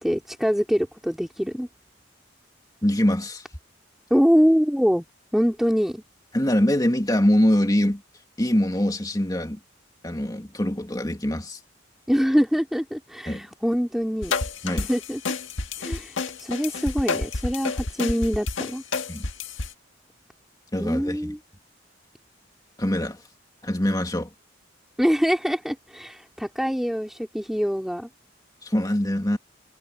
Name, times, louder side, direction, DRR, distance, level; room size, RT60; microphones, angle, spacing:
voice 1, 0.0-1.7 4.1-5.0 5.3-6.0 12.1-14.3 14.7-15.2 15.8-18.8 20.8-21.4 25.0-28.1, equal, ahead, 2.7 m, -24 dB
voice 2, 2.8-3.4 6.3-8.0 8.4-9.6 10.0-11.6 13.3-13.5 14.6-14.9 19.1-19.3 20.7-21.3 22.8-23.2 23.6-24.3 28.6-29.4, left 1 dB, 20° left, 2.3 m, -23 dB
sound 1, 14.2-19.7, left 3 dB, 80° left, 1.6 m, -29 dB
head